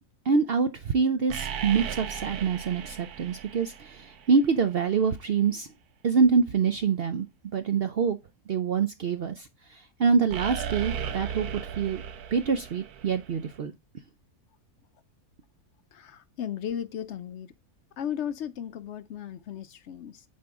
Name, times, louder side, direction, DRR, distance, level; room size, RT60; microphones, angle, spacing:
voice 1, 0.3-5.7 6.0-7.3 7.5-8.2 8.5-12.0 12.3-13.7, right 5 dB, 65° right, 0.6 m, -25 dB
sound 1, 1.3-4.5 10.3-13.6, right 8 dB, 80° right, 1.3 m, -36 dB
voice 2, 15.9-17.5 18.0-20.2, left 9 dB, 70° left, 0.7 m, -35 dB
7.4 x 4.4 x 3.5 m
omnidirectional pair, 1.6 m